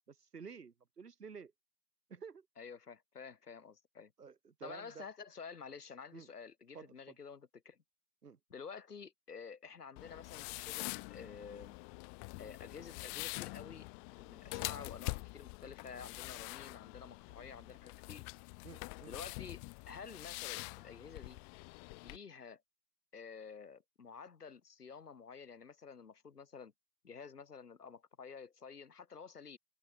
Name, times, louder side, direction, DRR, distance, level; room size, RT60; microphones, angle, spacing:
voice 1, 0.1-1.5 2.1-2.5 4.2-5.1 6.1-6.3 6.7-7.2 8.2-8.4 18.6-19.1, right 5 dB, 75° right, 4.2 m, -51 dB
voice 2, 2.6-4.1 4.6-7.8 8.5-11.8 12.4-13.9 14.2-18.2 19.0-21.4 22.0-22.6 23.1-26.7 27.0-29.6, left 6 dB, 75° left, 5.6 m, -50 dB
sound 1, 10.0-22.2, left 40 dB or more, 15° left, 1.1 m, -45 dB
hypercardioid pair, 150°, 47 cm